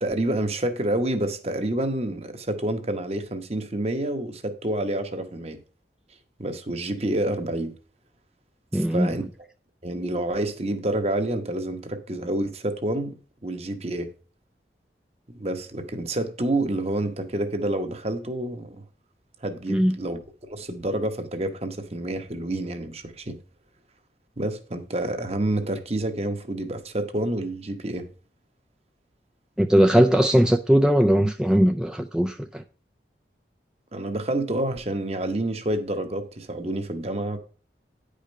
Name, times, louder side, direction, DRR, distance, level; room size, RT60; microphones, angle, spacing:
voice 1, 0.0-5.6 6.4-7.7 8.7-9.3 9.8-13.2 13.4-14.1 15.3-18.8 19.4-23.4 24.4-28.1 29.9-30.1 33.9-37.4, right 1 dB, 35° right, 1.0 m, -28 dB
voice 2, 8.7-9.2 19.7-19.9 29.6-32.6, equal, 5° right, 0.3 m, -19 dB
10.0 x 5.1 x 5.2 m
head